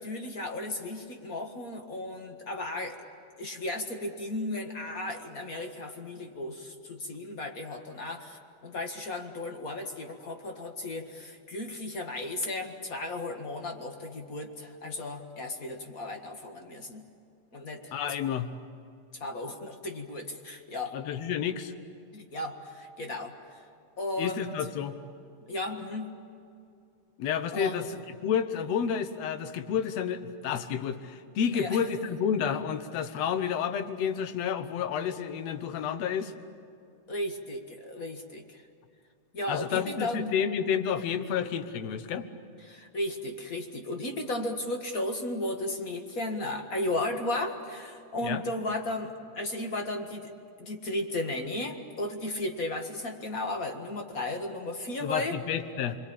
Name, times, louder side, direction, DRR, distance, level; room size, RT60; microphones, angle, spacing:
voice 1, 0.0-3.0 3.4-17.0 17.5-17.9 19.2-21.0 22.1-23.6 24.0-24.5 25.5-26.1 27.5-27.9 31.5-31.8 37.1-38.6 39.3-40.3 42.6-50.3 50.6-55.4, left 1 dB, 35° left, 4 dB, 1.5 m, -35 dB
voice 2, 17.9-18.5 20.9-21.7 24.2-25.0 27.2-27.9 28.2-36.3 39.5-42.3 48.2-48.4 55.0-56.0, left 8 dB, 65° left, 10 dB, 2.1 m, -30 dB
29.0 x 22.0 x 8.7 m, 2.4 s
omnidirectional pair, 3.5 m